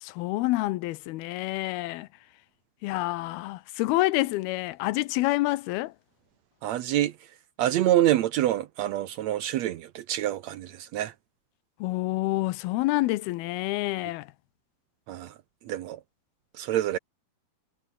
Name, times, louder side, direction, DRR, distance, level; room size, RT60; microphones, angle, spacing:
voice 1, 0.0-2.1 2.8-5.9 11.8-14.3, left 18 dB, 80° left, 2.6 m, -28 dB
voice 2, 6.6-7.1 7.6-11.1 15.1-15.3 15.6-16.0 16.5-17.0, right 13 dB, 85° right, 1.5 m, -26 dB
omnidirectional pair, 4.5 m